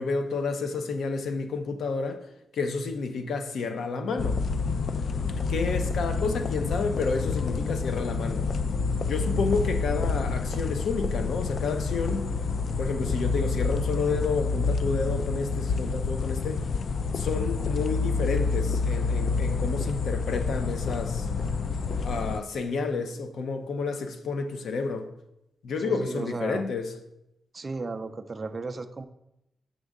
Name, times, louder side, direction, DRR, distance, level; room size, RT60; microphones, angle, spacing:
voice 1, 0.0-2.2 2.5-4.4 5.5-8.5 9.0-12.3 12.8-16.6 17.1-21.3 22.0-25.1 25.6-26.9, left 4 dB, 80° left, 0.7 m, -30 dB
sound 1, 4.2-22.4, left 4 dB, 50° left, 0.3 m, -28 dB
voice 2, 25.8-26.7 27.5-29.1, right 3 dB, 30° right, 0.4 m, -35 dB
6.6 x 6.2 x 3.6 m
wide cardioid pair, 155°, 0 cm